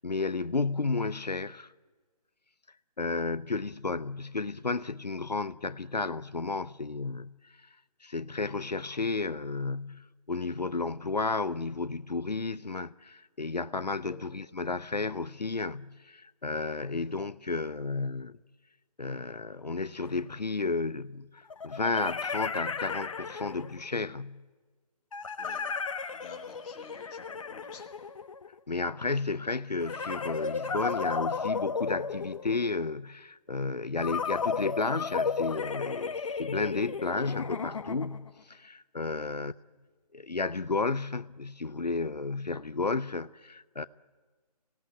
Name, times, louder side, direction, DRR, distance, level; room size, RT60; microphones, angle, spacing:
voice 1, 0.0-1.7 3.0-7.5 8.0-18.4 19.0-24.4 28.7-39.5 40.1-43.8, left 3 dB, 85° left, 0.7 m, -32 dB
voice 2, 16.8-17.3 25.4-25.7 26.1-27.9 39.1-39.3, left 6 dB, 15° left, 2.3 m, -50 dB
sound 1, 20.0-20.1 21.5-23.9 25.1-28.6 29.8-32.8 34.0-38.3, left 5 dB, 55° left, 1.1 m, -34 dB
25.0 x 17.5 x 9.5 m
figure-of-eight pair, 145°, 21 cm